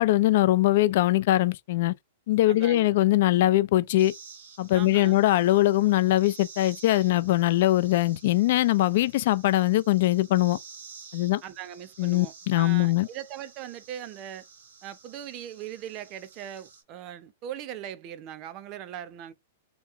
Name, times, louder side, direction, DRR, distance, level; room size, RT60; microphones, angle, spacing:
voice 1, 0.0-1.9 2.3-4.1 4.6-10.6 11.1-11.4 12.0-13.1, left 15 dB, 60° left, 0.4 m, -22 dB
voice 2, 2.5-2.9 4.7-5.2 11.4-14.4 14.8-19.3, right 10 dB, 40° right, 0.6 m, -40 dB
sound 1, 4.0-16.8, right 5 dB, 90° right, 1.5 m, -51 dB
3.0 x 2.3 x 3.6 m
hypercardioid pair, 130°, 0 cm